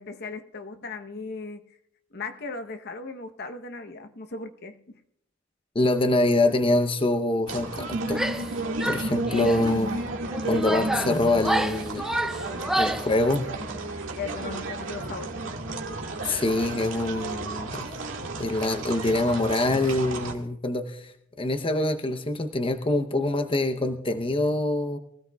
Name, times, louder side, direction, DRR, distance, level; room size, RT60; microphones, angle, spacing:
voice 1, 0.0-1.7 2.1-5.0 14.2-15.7, left 4 dB, 55° left, 7 dB, 0.9 m, -37 dB
voice 2, 5.7-8.2 8.9-9.9 10.5-12.0 12.8-13.5 16.2-17.9 18.4-21.1 21.4-25.0, left 2 dB, 25° left, 7 dB, 0.8 m, -25 dB
sound 1, 7.5-20.3, right 2 dB, 75° right, 1.9 m, -32 dB
Female speech woman speaking / Yell, 8.1-8.5 8.8-9.7 10.3-13.1, right 1 dB, ahead, 0.6 m, -29 dB
24.0 x 16.0 x 2.3 m, 0.73 s
head